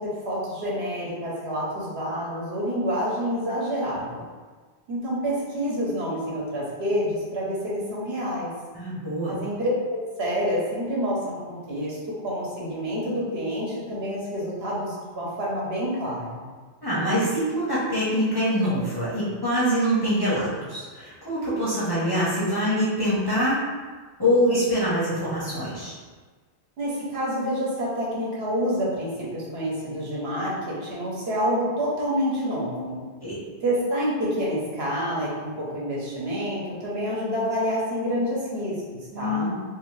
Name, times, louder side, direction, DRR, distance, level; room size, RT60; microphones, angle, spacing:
voice 1, 0.0-4.3 4.9-8.5 9.3-12.0 12.2-16.5 26.8-33.0 33.6-38.7 39.1-39.5, equal, 65° right, -6 dB, 1.1 m, -28 dB
voice 2, 8.7-9.3 16.8-23.6 24.2-25.9 33.2-33.4 39.1-39.5, equal, 25° left, -10 dB, 0.7 m, -24 dB
2.7 x 2.5 x 3.1 m, 1.4 s
omnidirectional pair, 1.1 m